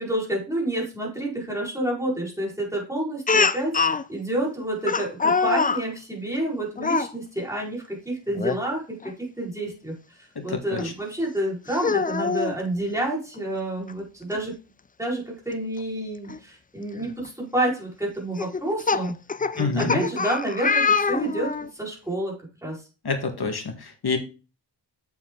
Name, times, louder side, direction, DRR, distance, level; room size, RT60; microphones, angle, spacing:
voice 1, 0.0-9.9 10.4-14.5 15.0-19.1 19.5-22.3 22.6-22.8, right 1 dB, 5° right, -4 dB, 4.7 m, -29 dB
Speech, 3.3-4.0 4.9-5.8 6.8-7.1 8.3-8.6 9.0-9.1 10.8-10.9 11.7-12.6 13.9-14.0 14.3-14.4 16.3-16.4 17.0-17.3 18.4-21.7, left 5 dB, 20° left, 0.4 m, -24 dB
voice 2, 10.4-10.8 19.6-20.0 23.0-24.2, left 4 dB, 60° left, 5 dB, 1.9 m, -27 dB
7.6 x 7.1 x 3.9 m, 0.33 s
wide cardioid pair, 95°, 44 cm